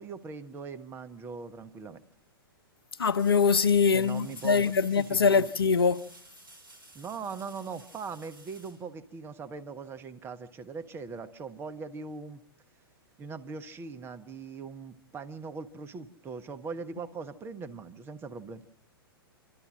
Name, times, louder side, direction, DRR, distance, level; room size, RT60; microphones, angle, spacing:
voice 1, 0.0-2.0 3.9-5.5 6.9-12.4 13.2-18.6, right 5 dB, 20° right, 1.1 m, -40 dB
voice 2, 3.0-6.0, left 5 dB, 80° left, 0.8 m, -23 dB
sound 1, 3.0-9.6 12.5-12.6, right 2 dB, 70° right, 6.4 m, -54 dB
28.0 x 13.0 x 7.4 m
figure-of-eight pair, 110°, 12 cm